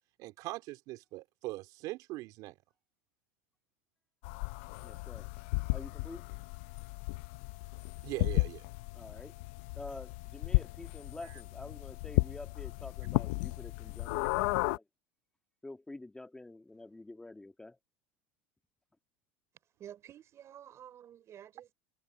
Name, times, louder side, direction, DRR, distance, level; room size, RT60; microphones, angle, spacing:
voice 1, 0.2-2.5 8.0-8.6, right 19 dB, 60° right, 3.8 m, -41 dB
sound 1, 4.2-14.8, left 22 dB, 70° left, 0.6 m, -34 dB
voice 2, 4.8-5.3 5.7-6.2 8.9-9.4 9.7-14.8 15.6-17.8, left 2 dB, 10° left, 2.0 m, -48 dB
voice 3, 19.8-21.7, right 10 dB, 40° right, 4.3 m, -51 dB
supercardioid pair, 95°, 7 cm